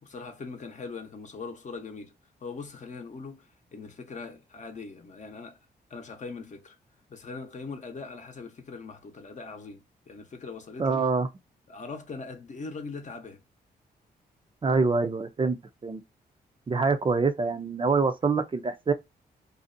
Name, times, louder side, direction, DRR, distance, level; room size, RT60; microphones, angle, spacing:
voice 1, 0.0-2.1 2.4-5.6 5.9-6.8 7.1-11.0 11.7-13.4, left 4 dB, 45° left, 0.7 m, -41 dB
voice 2, 10.8-11.3 14.6-15.6 15.8-16.0 16.7-18.9, right 4 dB, 30° right, 0.4 m, -25 dB
2.5 x 2.0 x 2.4 m
cardioid pair, 80°, 17 cm